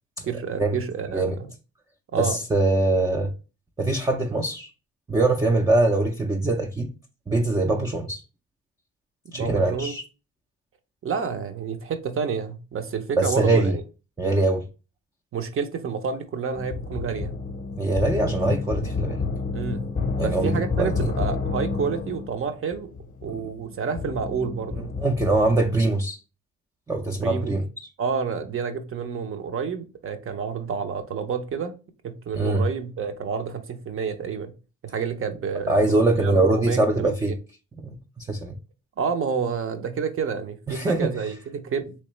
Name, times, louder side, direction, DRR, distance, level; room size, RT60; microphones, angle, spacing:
voice 1, 0.3-1.5 2.1-2.4 9.3-9.9 11.0-13.8 15.3-17.3 19.5-19.9 20.2-22.9 23.2-24.9 27.1-27.6 28.0-31.7 32.0-34.5 34.8-37.1 39.0-41.9, right 6 dB, 45° right, 0.7 m, -29 dB
voice 2, 2.2-3.3 3.8-4.7 5.1-6.9 7.3-8.2 9.3-10.0 13.2-13.8 14.2-14.6 17.8-19.2 20.2-21.1 23.3-23.4 25.0-26.2 26.9-27.9 32.3-32.6 35.7-37.3 37.8-38.6 40.7-41.1, right 2 dB, 10° right, 0.4 m, -23 dB
sound 1, 16.5-25.9, left 4 dB, 30° left, 0.6 m, -30 dB
3.2 x 3.1 x 3.1 m
cardioid pair, 90°, 30 cm